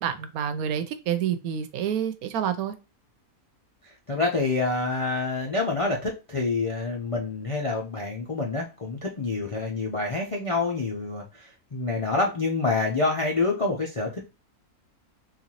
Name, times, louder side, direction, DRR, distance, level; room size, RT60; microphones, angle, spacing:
voice 1, 0.0-2.7, right 9 dB, 80° right, 1.1 m, -28 dB
voice 2, 4.1-14.3, left 3 dB, 50° left, 0.3 m, -27 dB
4.0 x 2.6 x 2.9 m
omnidirectional pair, 1.5 m